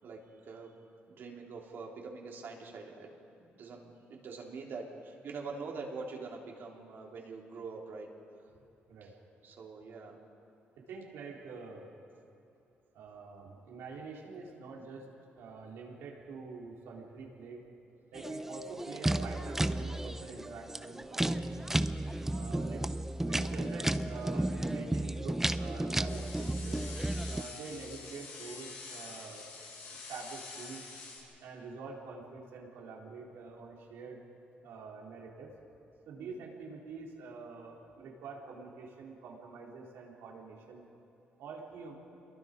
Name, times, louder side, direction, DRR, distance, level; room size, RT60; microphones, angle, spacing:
voice 1, 0.0-0.7 1.1-8.1 9.4-10.2 22.2-22.5 36.2-36.4, right 4 dB, 60° right, -1 dB, 3.5 m, -44 dB
voice 2, 10.7-11.9 12.9-15.1 15.4-17.6 18.1-21.7 22.2-22.9 23.2-26.8 27.3-29.4 29.9-30.8 31.4-34.2 34.6-35.5 36.0-40.8 41.4-41.9, right 4 dB, 90° right, -2 dB, 4.1 m, -46 dB
sound 1, 18.1-27.4, right 1 dB, 10° right, 0.7 m, -33 dB
sound 2, 26.1-31.2, left 4 dB, 85° left, 6.6 m, -47 dB
28.5 x 22.5 x 5.4 m, 2.7 s
cardioid pair, 100°, 4 cm